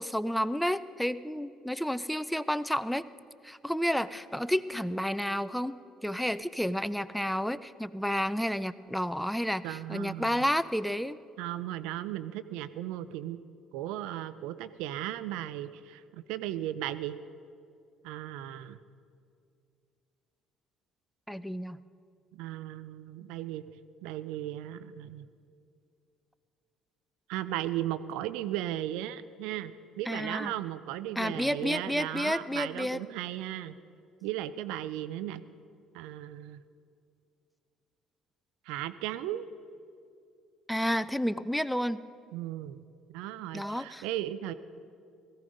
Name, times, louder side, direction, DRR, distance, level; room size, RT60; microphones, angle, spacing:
voice 1, 0.0-3.0 3.4-11.2 21.3-21.8 30.1-30.5 31.2-33.0 40.7-42.0 43.5-44.0, equal, ahead, 15 dB, 0.6 m, -31 dB
voice 2, 9.6-10.5 11.4-13.4 13.7-17.2 18.0-18.8 22.3-23.8 24.0-25.3 27.3-33.8 34.2-35.4 35.9-36.6 38.6-39.4 42.3-42.8 43.1-44.5, right 13 dB, 75° right, 14 dB, 0.5 m, -36 dB
17.5 x 15.0 x 5.2 m, 2.4 s
hypercardioid pair, 55°, 0 cm